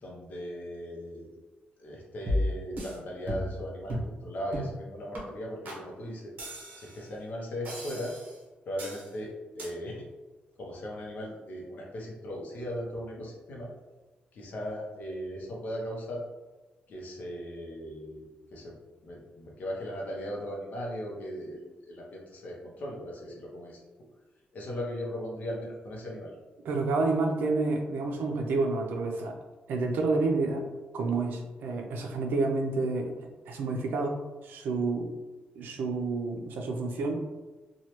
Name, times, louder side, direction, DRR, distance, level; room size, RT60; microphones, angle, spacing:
voice 1, 0.0-1.3 1.8-6.3 6.7-8.1 8.7-10.1 10.6-13.7 14.3-16.2 16.9-18.8 19.0-23.8 24.5-26.3, equal, 55° left, -2 dB, 0.7 m, -38 dB
sound 1, 2.3-3.0 3.3-3.6 3.9-4.1 4.5-4.8 5.1-5.2 5.7-5.8 6.4-7.0 7.7-8.4 8.8-9.1 9.6-9.7, left 1 dB, 60° right, 0.8 m, -33 dB
voice 2, 26.6-29.3 29.7-30.6 30.9-33.1 33.5-35.1 35.5-37.4, right 3 dB, 80° right, 3 dB, 0.5 m, -29 dB
3.1 x 2.3 x 2.9 m, 1.2 s
wide cardioid pair, 160°, 3 cm